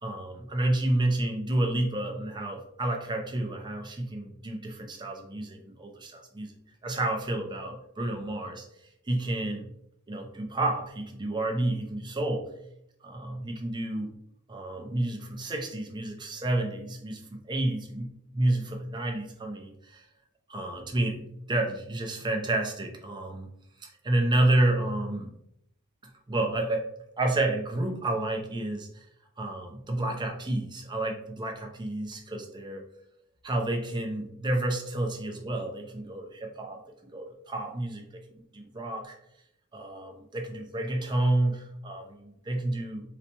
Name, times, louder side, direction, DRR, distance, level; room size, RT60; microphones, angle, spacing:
voice 1, 0.0-6.5 6.8-8.7 9.1-9.7 10.1-12.5 13.0-14.1 14.5-20.1 20.5-23.5 23.8-25.3 26.3-26.9 27.2-29.1 29.4-32.8 33.4-36.8 37.1-39.2 39.7-43.0, right 1 dB, 20° right, 2 dB, 0.5 m, -30 dB
4.0 x 2.2 x 2.8 m, 0.75 s
head